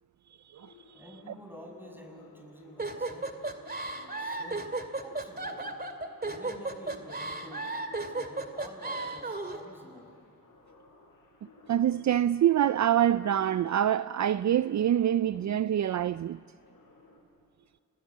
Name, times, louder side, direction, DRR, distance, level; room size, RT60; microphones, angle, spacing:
sound 1, 0.5-17.2, left 3 dB, 75° left, 6.3 m, -57 dB
voice 1, 0.9-3.4 3.8-4.8 5.0-5.7 6.2-10.2, equal, 5° right, 7.3 m, -49 dB
sound 2, 2.8-9.6, right 2 dB, 30° right, 2.3 m, -34 dB
voice 2, 11.7-16.4, right 10 dB, 55° right, 0.5 m, -25 dB
28.5 x 20.0 x 7.6 m
cardioid pair, 55°, 34 cm